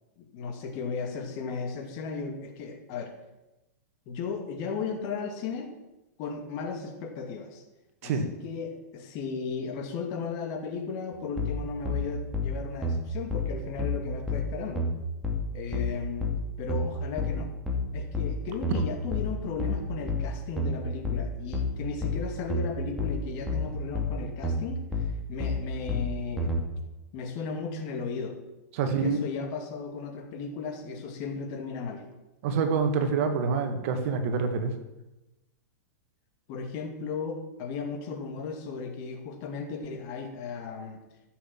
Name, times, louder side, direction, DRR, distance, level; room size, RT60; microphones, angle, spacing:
voice 1, 0.2-3.2 4.1-5.7 6.2-7.6 8.0-14.9 15.5-16.3 16.6-17.5 17.9-26.5 27.1-28.4 28.8-32.1 36.5-41.0, left 5 dB, 40° left, 4 dB, 2.5 m, -35 dB
sound 1, 11.4-26.6, left 2 dB, ahead, 2.4 m, -30 dB
voice 2, 28.7-29.2 32.4-34.7, right 5 dB, 50° right, 7 dB, 1.8 m, -26 dB
14.0 x 7.6 x 7.5 m, 0.98 s
supercardioid pair, 150°, 10 cm